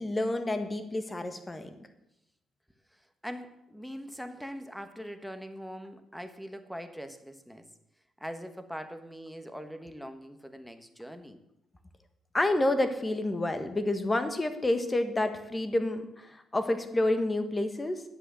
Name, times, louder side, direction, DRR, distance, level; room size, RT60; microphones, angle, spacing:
voice 1, 0.0-1.7 12.3-18.0, left 1 dB, 20° left, 8 dB, 1.5 m, -29 dB
voice 2, 2.9-7.7 8.2-11.4, equal, ahead, 9 dB, 1.4 m, -42 dB
9.9 x 8.1 x 7.6 m, 0.86 s
cardioid pair, 90°, 0 cm